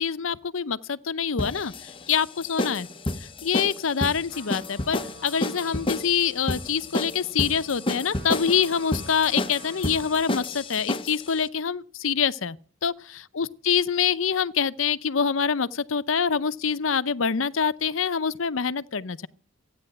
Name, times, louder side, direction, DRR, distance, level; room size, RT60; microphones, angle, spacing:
voice 1, 0.0-2.9 3.4-12.6 12.8-19.3, left 6 dB, 90° left, 0.7 m, -25 dB
sound 1, 1.4-11.3, left 1 dB, 25° left, 0.9 m, -30 dB
Trumpet, 4.2-10.5, right 3 dB, 60° right, 6.1 m, -49 dB
15.0 x 9.5 x 7.8 m
head